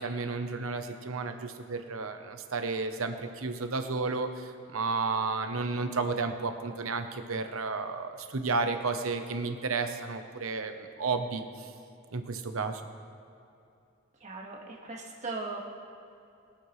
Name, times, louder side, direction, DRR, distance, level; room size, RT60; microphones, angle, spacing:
voice 1, 0.0-11.7 12.1-12.8, right 4 dB, 85° right, 7 dB, 0.9 m, -32 dB
voice 2, 14.2-15.6, right 3 dB, 35° right, -2 dB, 1.7 m, -38 dB
22.5 x 8.5 x 3.3 m, 2.7 s
head